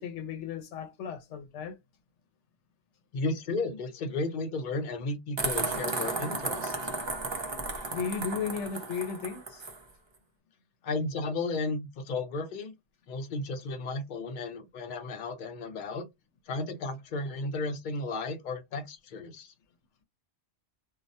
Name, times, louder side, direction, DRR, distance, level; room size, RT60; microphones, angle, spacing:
voice 1, 0.0-1.8 7.9-9.7, left 6 dB, 85° left, 0.9 m, -35 dB
voice 2, 3.1-6.7 10.8-12.7 13.1-16.1 16.5-19.5, left 3 dB, 50° left, 0.7 m, -34 dB
sound 1, 5.4-9.8, right 3 dB, 40° right, 0.4 m, -34 dB
2.3 x 2.1 x 2.6 m
omnidirectional pair, 1.2 m